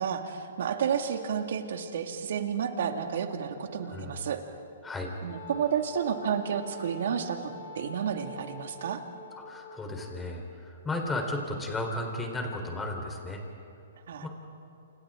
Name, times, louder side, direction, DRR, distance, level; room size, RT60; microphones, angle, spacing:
voice 1, 0.0-4.4 5.2-9.0 14.1-14.3, right 7 dB, 65° right, 5 dB, 2.1 m, -31 dB
Wind instrument woodwind instrument, 5.3-10.4, left 2 dB, 55° left, 3.8 m, -46 dB
voice 2, 9.4-13.4 14.2-14.3, left 2 dB, 10° left, 2 dB, 3.8 m, -34 dB
29.0 x 28.0 x 3.8 m, 2.7 s
hypercardioid pair, 140°, 0 cm